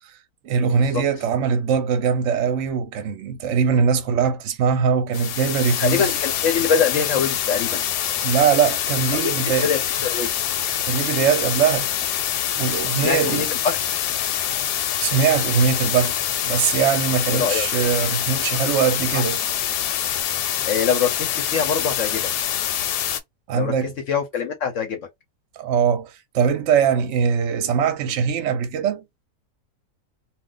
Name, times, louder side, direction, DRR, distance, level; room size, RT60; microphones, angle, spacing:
voice 1, 0.4-6.1 8.2-9.7 10.8-11.9 12.6-13.5 15.0-16.2 16.4-19.4 23.5-23.9 25.6-29.0, right 7 dB, 60° right, 0.8 m, -21 dB
sound 1, 5.1-23.2, left 10 dB, 85° left, 1.1 m, -25 dB
voice 2, 5.8-7.8 9.1-10.3 13.0-13.8 17.3-17.7 19.1-19.2 20.7-22.3 23.5-23.7 24.1-25.0, left 6 dB, 65° left, 0.8 m, -24 dB
2.4 x 2.3 x 3.7 m
omnidirectional pair, 1.7 m